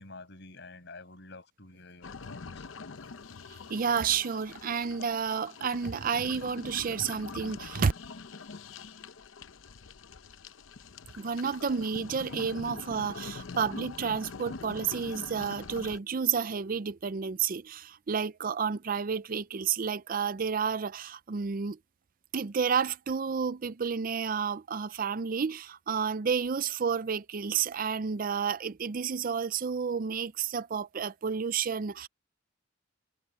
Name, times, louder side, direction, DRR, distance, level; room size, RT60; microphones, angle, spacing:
voice 1, 0.0-2.7, left 3 dB, 60° left, 7.4 m, -49 dB
sound 1, 2.0-16.0, left 4 dB, 90° left, 0.8 m, -44 dB
voice 2, 3.5-7.9 11.2-21.8 22.3-32.1, right 6 dB, 45° right, 0.5 m, -31 dB
head